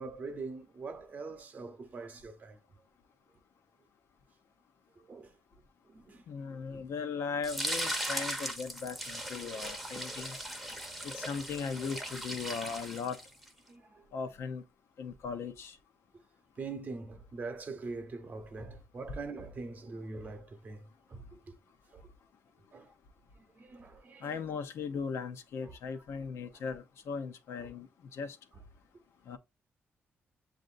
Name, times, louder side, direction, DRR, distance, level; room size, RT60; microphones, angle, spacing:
voice 1, 0.0-2.6 5.0-5.3 5.8-6.9 13.7-14.0 16.6-21.5 21.9-22.1 22.7-22.9 23.6-24.3 25.6-25.8 27.6-27.7, right 3 dB, 40° right, 0.9 m, -43 dB
voice 2, 6.3-10.4 11.0-13.2 14.1-14.6 15.0-15.8 24.2-28.4 29.3-29.4, left 5 dB, 80° left, 0.7 m, -38 dB
sound 1, 7.4-13.5, equal, ahead, 0.7 m, -38 dB
7.6 x 2.6 x 2.5 m
wide cardioid pair, 155°, 5 cm